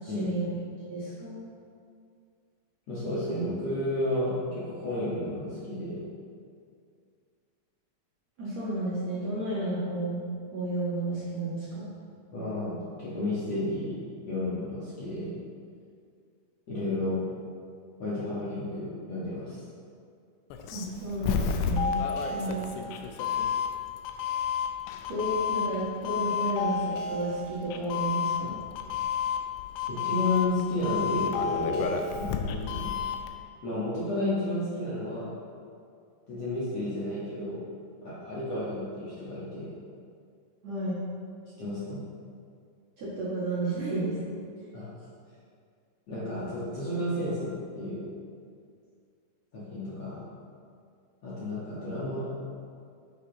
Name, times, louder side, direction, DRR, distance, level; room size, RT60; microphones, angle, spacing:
voice 1, 0.0-0.5 0.9-1.4 8.4-10.3 10.5-11.9 20.7-22.0 22.3-22.7 25.1-28.6 40.6-41.0 43.0-44.4, right 2 dB, 55° right, -9 dB, 2.1 m, -32 dB
voice 2, 2.9-6.0 12.3-14.0 14.3-15.3 16.7-17.2 18.0-19.6 29.9-32.9 33.6-35.3 36.3-37.6 38.0-39.7 41.6-42.0 44.7-44.9 46.1-48.1 49.5-50.2 51.2-52.3, left 1 dB, 55° left, -10 dB, 2.1 m, -32 dB
Doorbell, 20.5-33.3, left 7 dB, 85° left, 2.8 m, -31 dB
9.3 x 8.7 x 3.0 m, 2.3 s
omnidirectional pair, 4.8 m